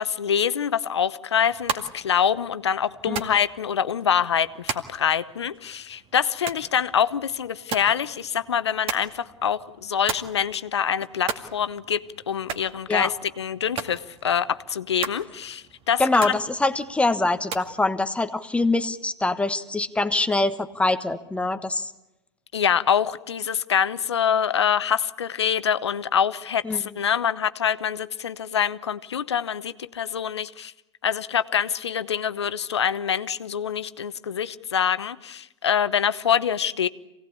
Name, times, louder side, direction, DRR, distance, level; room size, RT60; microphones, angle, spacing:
voice 1, 0.0-16.3 22.5-30.7 31.0-36.9, left 8 dB, 80° left, 14 dB, 0.9 m, -25 dB
sound 1, 1.4-17.7, right 6 dB, 40° right, 2.2 m, -38 dB
voice 2, 16.0-21.9 26.6-26.8, left 2 dB, 10° left, 9 dB, 1.2 m, -24 dB
26.5 x 18.0 x 8.5 m, 0.95 s
hypercardioid pair, 90°, 14 cm